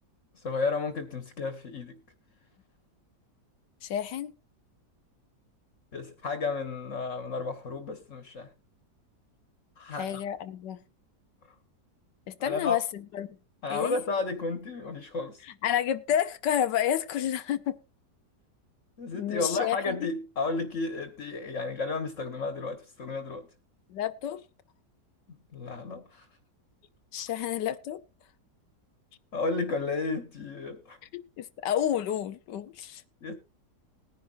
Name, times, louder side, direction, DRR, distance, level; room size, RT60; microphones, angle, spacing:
voice 1, 0.3-2.0 5.9-8.5 9.8-10.2 12.4-12.8 13.6-15.4 19.0-23.5 25.3-26.3 29.3-31.0 33.2-33.3, left 3 dB, 45° left, 1.6 m, -32 dB
voice 2, 3.8-4.3 10.0-10.8 12.3-13.3 13.7-14.0 15.6-17.8 19.1-20.0 23.9-24.4 27.1-28.0 31.4-33.0, left 10 dB, 85° left, 1.4 m, -30 dB
20.0 x 10.5 x 2.6 m
omnidirectional pair, 1.8 m